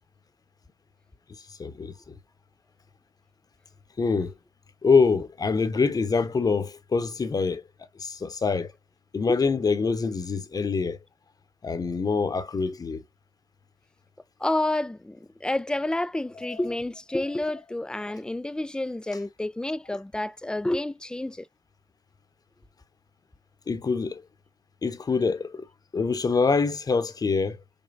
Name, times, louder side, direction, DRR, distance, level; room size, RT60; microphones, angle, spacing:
voice 1, 1.6-2.1 4.0-4.3 4.8-7.6 8.0-8.7 9.1-11.0 11.6-13.0 23.7-24.2 24.8-25.7 25.9-27.6, left 4 dB, 30° left, 0.8 m, -25 dB
voice 2, 14.4-21.5, left 1 dB, 5° left, 0.3 m, -29 dB
5.3 x 2.2 x 2.5 m
supercardioid pair, 65°, 12 cm